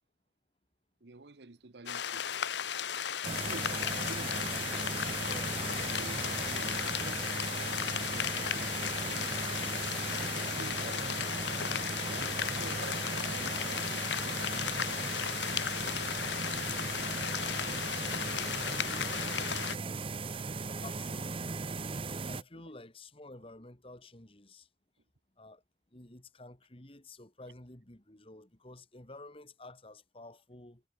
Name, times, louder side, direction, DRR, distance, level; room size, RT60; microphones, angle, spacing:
voice 1, 1.0-2.3 3.2-3.7 4.0-4.4 5.6-9.5 10.3-11.3 12.1-16.2 22.5-22.6, right 3 dB, 70° right, 1.0 m, -50 dB
sound 1, 1.9-19.8, left 8 dB, 80° left, 0.9 m, -35 dB
sound 2, 3.2-22.4, right 4 dB, 30° right, 0.6 m, -37 dB
voice 2, 5.2-5.6 17.9-18.5 20.8-21.8 22.3-24.7 25.4-25.6 25.9-30.8, left 2 dB, 30° left, 2.4 m, -51 dB
head